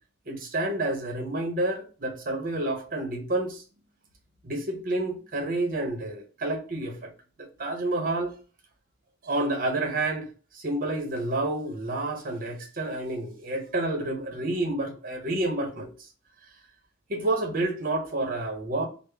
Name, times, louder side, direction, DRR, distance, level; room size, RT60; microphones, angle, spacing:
voice 1, 0.3-3.6 4.4-7.1 7.4-8.3 9.2-10.3 10.5-16.1 17.1-18.9, right 2 dB, 45° right, 0.8 m, -29 dB
3.5 x 2.0 x 3.3 m
head